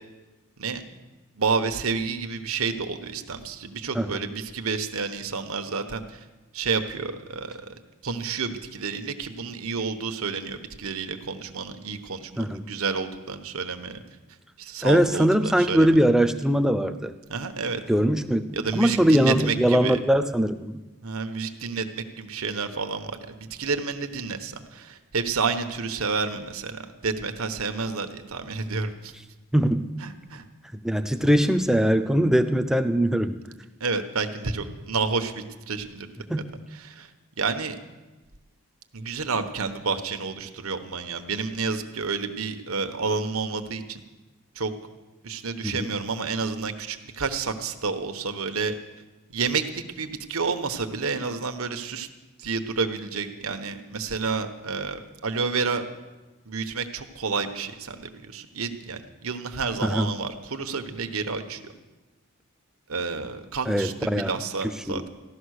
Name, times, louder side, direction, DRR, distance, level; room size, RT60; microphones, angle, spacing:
voice 1, 1.4-6.3 6.5-7.7 8.0-14.0 14.6-16.0 17.3-17.8 18.5-20.0 21.0-29.1 30.0-30.4 33.8-36.1 36.7-37.1 37.4-37.8 38.9-44.0 44.5-44.7 45.2-48.8 49.3-52.1 52.4-55.8 56.5-61.7 62.9-65.1, right 4 dB, 75° right, 8 dB, 1.1 m, -30 dB
voice 2, 14.8-17.1 17.9-20.8 29.5-29.9 30.8-33.4 36.3-36.5 45.6-45.8 59.9-60.1 63.7-64.3 64.9-65.0, equal, ahead, 8 dB, 0.6 m, -21 dB
15.0 x 12.0 x 6.5 m, 1.1 s
head